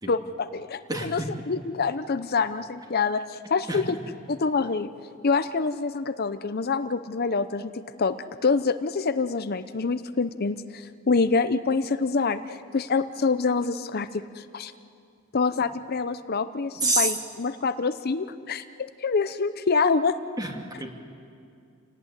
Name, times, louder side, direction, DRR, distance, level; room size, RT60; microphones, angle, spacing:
voice 1, 0.1-4.0 4.3-4.9 5.2-8.1 8.4-14.7 15.3-18.6 19.0-20.2, left 4 dB, 50° left, 11 dB, 0.7 m, -26 dB
voice 2, 0.9-1.3 3.7-4.0 16.8-17.1 20.4-20.9, right 2 dB, 20° right, 3 dB, 2.3 m, -27 dB
28.0 x 18.0 x 9.9 m, 2.5 s
head